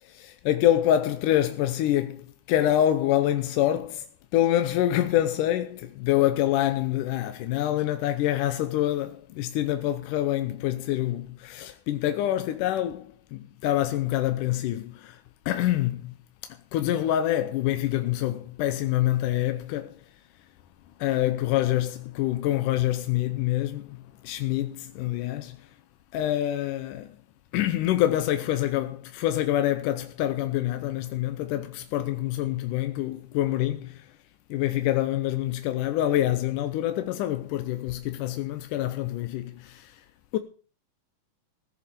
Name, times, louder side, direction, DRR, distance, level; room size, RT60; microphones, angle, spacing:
voice 1, 0.0-4.1 4.3-15.2 15.5-16.1 16.7-20.0 21.0-24.0 24.2-25.6 26.1-27.2 27.5-34.1 34.5-40.0 40.3-40.4, left 13 dB, 90° left, 2.4 m, -26 dB
16.5 x 6.8 x 6.9 m
omnidirectional pair, 3.6 m